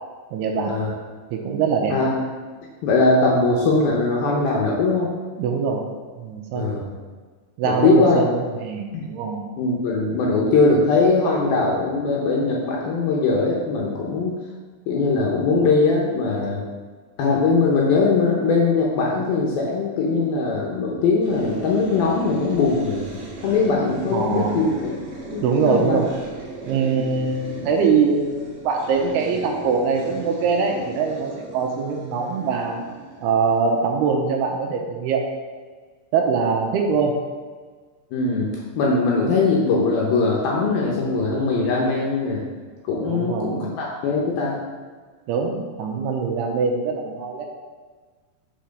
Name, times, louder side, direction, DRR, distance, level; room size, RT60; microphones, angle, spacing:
voice 1, 0.3-0.8 1.3-2.0 5.4-5.8 6.2-6.7 7.6-9.4 24.1-24.6 25.4-26.1 26.6-32.8 33.2-35.2 36.1-37.2 43.1-43.6 45.3-47.5, right 5 dB, 80° right, 1 dB, 2.5 m, -23 dB
voice 2, 1.9-2.2 2.8-5.1 6.6-6.9 7.6-8.2 8.9-9.1 9.6-14.3 14.9-16.6 17.2-23.0 23.4-24.9 25.3-26.0 38.1-38.5 38.8-42.4 42.9-44.6, left 3 dB, 75° left, -2 dB, 2.2 m, -20 dB
sound 1, 21.2-34.1, right 4 dB, 55° right, 2.3 m, -37 dB
7.3 x 4.4 x 5.2 m, 1.5 s
omnidirectional pair, 5.2 m